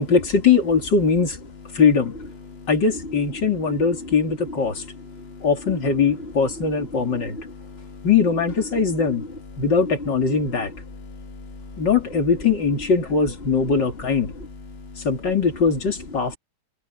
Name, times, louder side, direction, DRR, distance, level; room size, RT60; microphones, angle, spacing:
voice 1, 0.0-1.4 1.7-2.2 2.7-4.8 5.4-7.4 8.0-9.2 9.6-10.7 11.8-14.3 15.0-16.4, left 5 dB, 85° left, 3.6 m, -21 dB
voice 2, 3.4-5.8 6.1-8.1 8.9-9.6 10.3-11.9 14.3-15.3, left 2 dB, 35° left, 2.8 m, -38 dB
open air
omnidirectional pair, 1.9 m